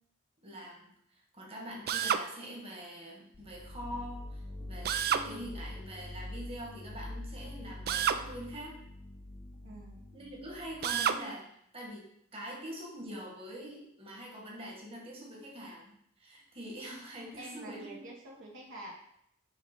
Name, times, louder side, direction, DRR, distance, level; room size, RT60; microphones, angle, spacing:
voice 1, 0.4-8.8 10.1-11.4 11.7-12.1 12.3-18.0, equal, 30° right, -2 dB, 1.6 m, -44 dB
Drill, 1.9-2.3 4.8-5.3 7.9-8.2 10.8-11.2, right 8 dB, 50° right, 0.4 m, -29 dB
sound 1, 3.3-11.1, left 1 dB, 30° left, 0.4 m, -45 dB
voice 2, 9.6-10.1 17.4-18.9, right 1 dB, 65° right, -2 dB, 1.3 m, -47 dB
6.5 x 3.2 x 6.0 m, 0.72 s
head